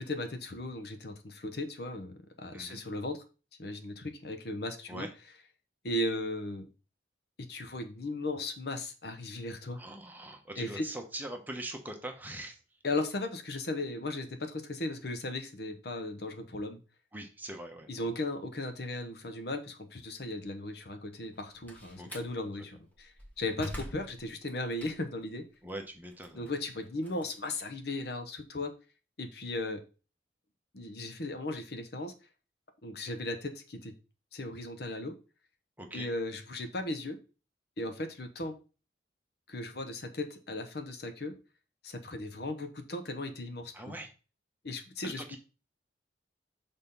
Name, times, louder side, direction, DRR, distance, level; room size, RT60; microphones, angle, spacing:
voice 1, 0.0-3.2 3.6-5.1 5.8-6.7 7.4-9.8 10.6-10.9 12.8-16.8 17.9-25.5 26.3-28.7 29.2-29.8 30.7-32.1 32.8-33.9 34.3-35.1 35.9-37.2 37.8-38.6 39.5-41.3 41.8-44.0 44.6-45.4, left 2 dB, 60° left, 7 dB, 0.9 m, -36 dB
voice 2, 9.7-12.6 17.1-18.0 21.9-22.2 25.6-26.5 35.8-36.1 43.7-44.1 45.0-45.4, right 1 dB, 10° right, 4 dB, 1.0 m, -42 dB
Slam, 21.2-22.3 22.9-25.3 25.7-28.1, left 1 dB, 10° left, 1.2 m, -46 dB
6.5 x 3.6 x 5.3 m, 0.33 s
head